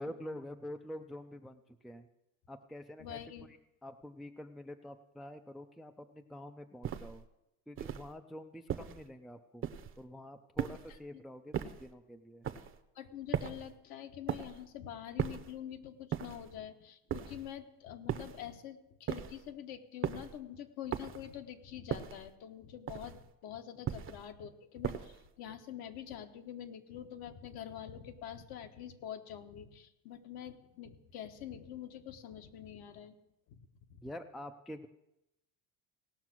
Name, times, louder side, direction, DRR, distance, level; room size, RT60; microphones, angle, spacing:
voice 1, 0.0-2.1 2.5-3.6 3.8-7.2 7.7-9.6 10.0-12.5 34.0-34.9, left 1 dB, ahead, 9 dB, 0.4 m, -47 dB
voice 2, 3.0-3.5 11.1-11.2 12.9-33.2 33.5-34.0, left 10 dB, 60° left, 7 dB, 1.2 m, -46 dB
sound 1, 6.8-7.2 7.8-8.1 8.7-9.1 9.6-10.0 10.6-11.0 11.5-11.9 12.4-12.8 13.3-13.7 14.3-14.7 15.2-15.6 16.1-16.5 17.1-17.5 18.1-18.5 19.1-19.5 20.0-20.4 20.9-21.3 21.9-22.3 22.9-23.3 23.9-24.3 24.8-25.3, right 9 dB, 30° right, 0.7 m, -38 dB
17.5 x 6.0 x 6.0 m, 0.88 s
cardioid pair, 120°, 41 cm